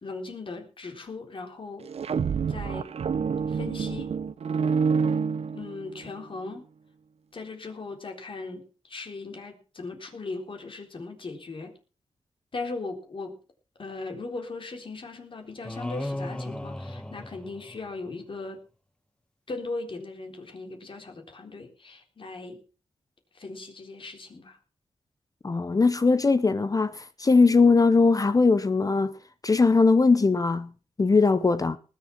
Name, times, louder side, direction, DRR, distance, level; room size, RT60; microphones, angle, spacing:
voice 1, 0.0-1.9 2.5-2.9 3.5-4.1 5.5-6.7 7.3-11.7 12.5-13.4 13.8-18.6 19.5-22.6 23.3-24.6, left 3 dB, 50° left, 3.8 m, -38 dB
sound 1, 1.8-6.1, right 6 dB, 70° right, 0.8 m, -27 dB
sound 2, 15.6-18.2, left 1 dB, 10° left, 1.4 m, -35 dB
voice 2, 25.4-29.1 29.4-30.7 31.0-31.8, left 4 dB, 35° left, 0.8 m, -20 dB
19.5 x 7.1 x 5.8 m
cardioid pair, 70°, 11 cm